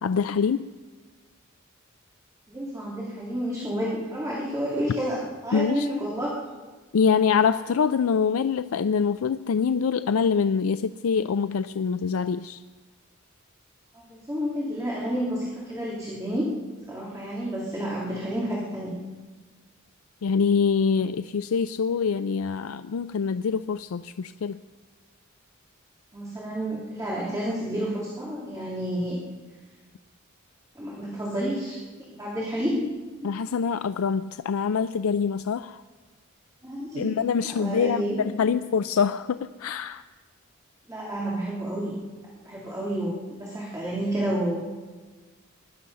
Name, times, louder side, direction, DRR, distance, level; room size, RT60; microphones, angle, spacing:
voice 1, 0.0-0.6 5.5-5.9 6.9-12.6 20.2-24.6 33.2-35.8 37.0-40.0, left 6 dB, 90° left, 12 dB, 0.4 m, -25 dB
voice 2, 2.5-6.3 14.1-16.5 16.9-18.9 26.1-29.2 30.7-31.8 32.1-32.8 36.6-37.2 37.5-38.2 40.9-42.0 42.4-44.8, equal, 15° right, -5 dB, 3.0 m, -30 dB
20.5 x 12.5 x 5.5 m, 1.3 s
head